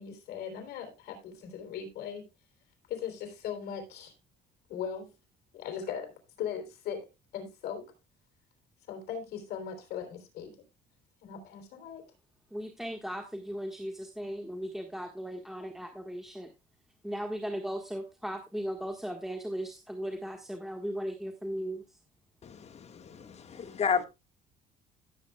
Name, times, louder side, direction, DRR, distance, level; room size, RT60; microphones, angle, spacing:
voice 1, 0.0-2.3 2.9-4.1 4.7-5.1 5.5-6.1 6.4-7.1 7.3-7.9 8.9-10.6 11.2-12.0, left 8 dB, 70° left, 3.5 m, -39 dB
voice 2, 12.5-16.5 17.0-21.8, equal, ahead, 1.5 m, -37 dB
voice 3, 22.4-24.0, left 6 dB, 40° left, 1.6 m, -32 dB
17.0 x 8.0 x 2.3 m
cardioid pair, 110°, 17 cm